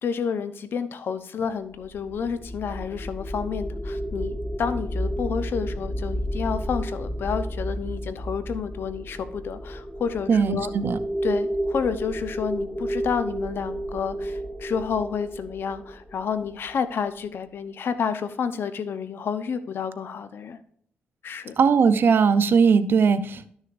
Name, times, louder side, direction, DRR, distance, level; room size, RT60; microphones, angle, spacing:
voice 1, 0.0-10.7 11.2-20.6 21.2-21.6, left 6 dB, 65° left, 11 dB, 0.8 m, -30 dB
sound 1, 1.7-16.9, equal, 20° left, 1.6 m, -31 dB
voice 2, 10.3-11.0 21.6-23.5, right 5 dB, 60° right, 12 dB, 0.7 m, -19 dB
12.5 x 6.3 x 2.6 m, 0.62 s
cardioid pair, 80°, 4 cm